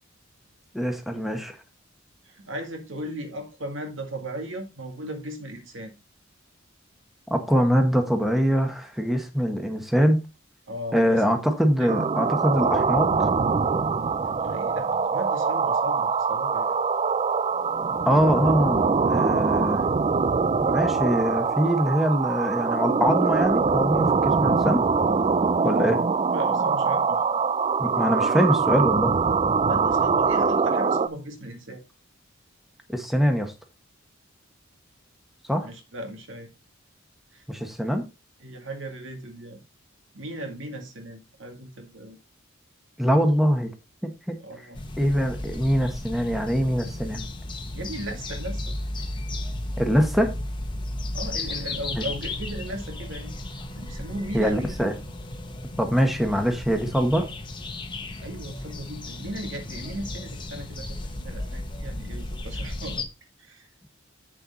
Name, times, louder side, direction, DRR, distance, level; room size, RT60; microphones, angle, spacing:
voice 1, 0.7-1.5 7.3-10.2 10.9-13.3 18.1-19.8 20.6-24.8 25.6-26.0 27.8-29.1 32.9-33.5 35.5-35.7 37.5-38.0 43.0-43.7 44.0-44.4 45.0-47.2 49.8-50.3 51.9-52.1 54.3-54.9 55.8-57.3, equal, ahead, 1.3 m, -23 dB
voice 2, 2.3-5.9 10.7-11.2 11.8-11.9 14.3-16.8 25.6-26.0 26.3-27.3 29.6-31.8 35.6-36.5 37.3-37.4 38.4-39.6 40.1-42.2 44.4-44.8 47.7-48.7 51.1-53.3 53.7-54.7 58.2-63.1 63.4-63.7, right 1 dB, 65° right, 2.2 m, -36 dB
sound 1, 11.9-31.1, right 5 dB, 30° right, 0.4 m, -23 dB
sound 2, 44.7-63.0, left 2 dB, 25° left, 1.1 m, -34 dB
8.1 x 6.7 x 4.1 m
head